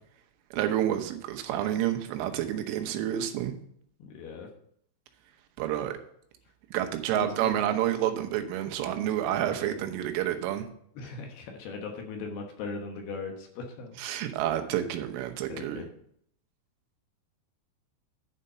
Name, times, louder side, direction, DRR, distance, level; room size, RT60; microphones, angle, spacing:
voice 1, 0.5-3.5 5.6-6.0 6.7-10.7 14.0-15.8, right 11 dB, 85° right, 6 dB, 3.5 m, -29 dB
voice 2, 4.0-4.5 7.1-7.5 9.3-9.8 11.0-14.2 15.5-15.9, left 4 dB, 70° left, 2 dB, 2.7 m, -39 dB
11.0 x 5.2 x 5.6 m, 0.67 s
omnidirectional pair, 5.6 m